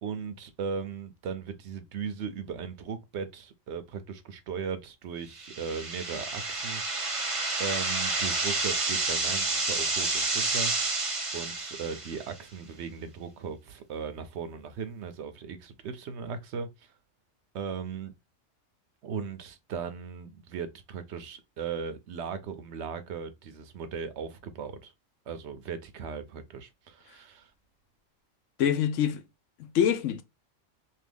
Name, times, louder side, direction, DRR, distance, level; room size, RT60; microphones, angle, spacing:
voice 1, 0.0-11.0 11.3-16.9 17.5-18.1 19.0-24.9 25.3-27.5, right 6 dB, 65° right, 0.8 m, -37 dB
sound 1, 5.4-12.3, right 3 dB, 30° right, 0.8 m, -30 dB
voice 2, 28.6-29.2 29.6-30.2, left 9 dB, 75° left, 0.9 m, -25 dB
2.7 x 2.7 x 3.3 m
omnidirectional pair, 1.3 m